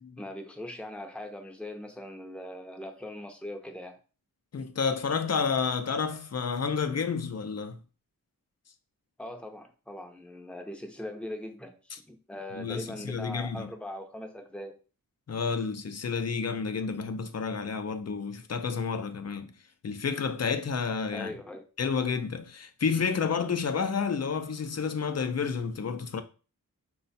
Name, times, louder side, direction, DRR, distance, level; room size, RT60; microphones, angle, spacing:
voice 1, 0.2-4.0 9.2-14.8 21.1-21.6, left 1 dB, 5° left, 0.7 m, -41 dB
voice 2, 4.5-7.8 11.9-12.0 12.5-13.7 15.3-19.5 19.8-21.4 21.8-26.2, left 5 dB, 45° left, 0.6 m, -30 dB
5.3 x 2.3 x 4.1 m
wide cardioid pair, 90°, 35 cm